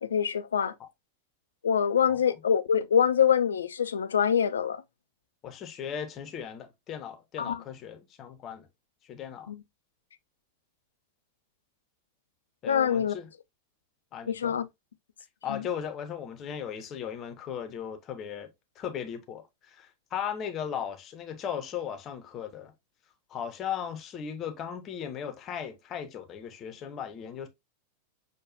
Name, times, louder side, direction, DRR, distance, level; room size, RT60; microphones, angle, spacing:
voice 1, 0.0-0.7 1.6-4.8 7.4-7.6 9.5-9.6 12.6-13.1 14.3-14.6 15.5-15.6, left 8 dB, 70° left, 0.4 m, -25 dB
voice 2, 5.4-8.7 9.0-9.5 12.6-13.3 14.1-14.6 15.4-18.5 18.8-22.7 23.3-27.5, left 8 dB, 30° left, 0.7 m, -37 dB
6.4 x 2.3 x 2.5 m
figure-of-eight pair, 90°, 0 cm